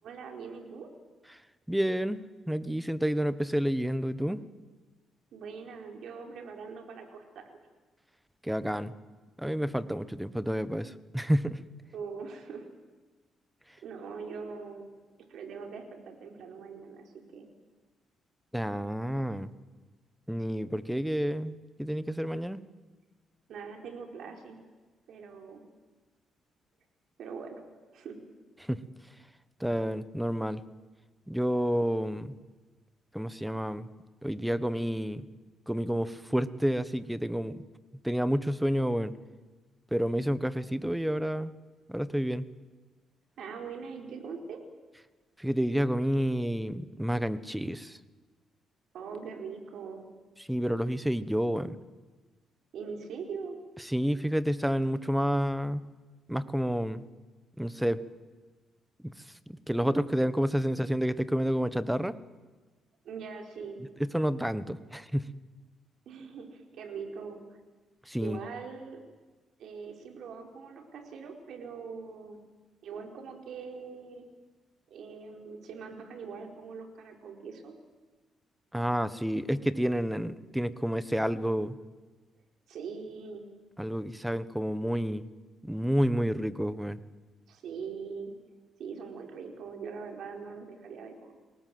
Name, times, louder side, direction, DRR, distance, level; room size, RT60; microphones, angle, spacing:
voice 1, 0.0-0.9 5.3-7.4 11.9-12.7 13.8-14.8 15.3-17.5 23.5-24.6 25.1-25.6 27.2-27.6 27.9-28.2 43.4-44.6 48.9-50.1 52.7-53.6 63.0-63.8 66.1-67.4 68.2-69.0 69.6-72.4 72.8-74.3 74.9-77.7 82.7-83.4 87.5-88.3 88.8-91.3, right 5 dB, 70° right, 3 dB, 4.4 m, -42 dB
voice 2, 1.7-2.2 2.5-4.4 8.4-8.9 9.4-11.6 18.5-19.5 20.3-22.6 28.6-28.8 29.6-30.6 31.3-32.3 33.1-33.9 34.2-35.3 35.7-37.6 38.0-39.1 39.9-41.5 41.9-42.5 45.4-48.0 50.5-51.8 53.8-55.8 56.3-57.0 57.6-58.0 59.0-59.1 59.7-62.1 64.0-65.3 68.1-68.4 78.7-81.8 83.8-85.3 85.6-87.0, equal, 5° right, 14 dB, 1.3 m, -29 dB
29.5 x 19.0 x 7.9 m, 1.3 s
cardioid pair, 90°, 0 cm